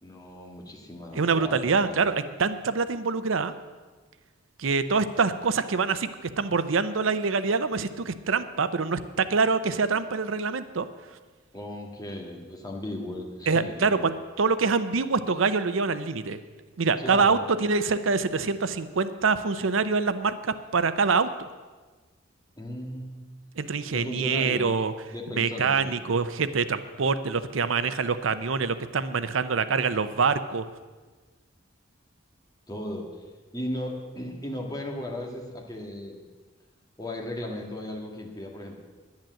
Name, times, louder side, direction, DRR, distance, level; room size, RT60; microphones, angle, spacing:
voice 1, 0.0-2.1 11.5-14.1 17.0-17.4 22.6-23.2 23.9-24.7 25.1-25.9 32.7-33.1 33.5-36.2 37.0-38.8, left 1 dB, 20° left, 0 dB, 1.8 m, -36 dB
voice 2, 1.1-3.5 4.6-10.9 13.5-14.1 14.4-16.4 16.8-21.3 23.6-24.9 25.3-30.6, right 4 dB, 85° right, 12 dB, 0.7 m, -25 dB
10.5 x 10.5 x 7.6 m, 1.4 s
head